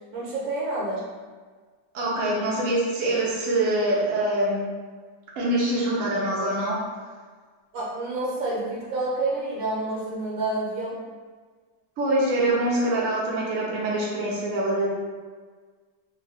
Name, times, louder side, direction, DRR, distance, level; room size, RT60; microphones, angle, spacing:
voice 1, 0.1-1.0 7.7-11.0, right 2 dB, 75° right, -5 dB, 1.6 m, -28 dB
voice 2, 1.9-4.7 5.4-6.8 12.0-14.9, right 1 dB, 60° right, -5 dB, 0.9 m, -24 dB
3.5 x 2.2 x 3.4 m, 1.5 s
omnidirectional pair, 2.1 m